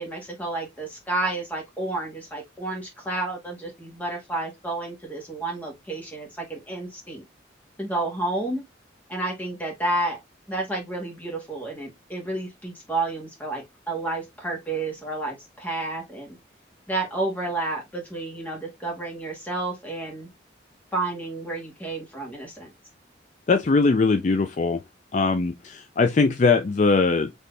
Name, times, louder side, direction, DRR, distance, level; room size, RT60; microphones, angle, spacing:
voice 1, 0.0-7.2 7.8-8.6 9.1-10.2 10.5-16.3 16.9-20.3 20.9-22.7, right 2 dB, 10° left, 1.6 m, -30 dB
voice 2, 23.5-24.8 25.1-27.3, left 4 dB, 40° left, 0.4 m, -21 dB
4.2 x 3.2 x 3.2 m
head